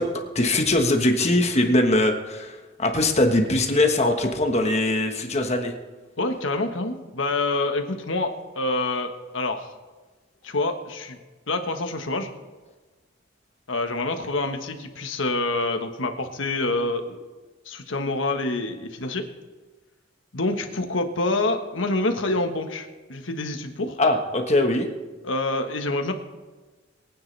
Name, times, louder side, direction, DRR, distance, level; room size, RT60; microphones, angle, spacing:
voice 1, 0.0-5.7 24.0-24.9, left 1 dB, 35° left, 4 dB, 1.4 m, -21 dB
voice 2, 6.2-9.7 10.4-11.2 11.5-12.3 13.7-17.3 17.6-19.3 20.3-24.0 25.2-26.1, left 2 dB, 80° left, 5 dB, 1.4 m, -27 dB
23.0 x 9.4 x 3.4 m, 1.3 s
head